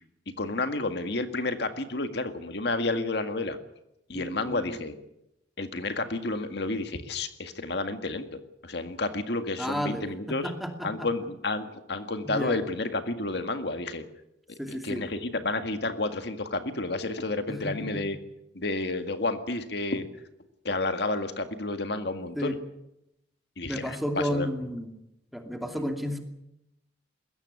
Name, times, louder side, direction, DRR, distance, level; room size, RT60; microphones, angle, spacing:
voice 1, 0.4-3.6 4.1-5.0 5.6-10.5 10.8-14.0 14.5-18.2 18.6-20.1 20.6-22.6 23.6-24.0 24.3-24.5, left 2 dB, 60° left, 8 dB, 1.9 m, -31 dB
voice 2, 4.1-4.8 9.6-10.1 10.4-11.1 12.2-12.6 14.6-15.0 17.5-18.0 22.4-22.5 23.7-24.9 25.3-26.2, equal, ahead, 4 dB, 2.5 m, -32 dB
21.5 x 16.5 x 9.5 m, 0.85 s
head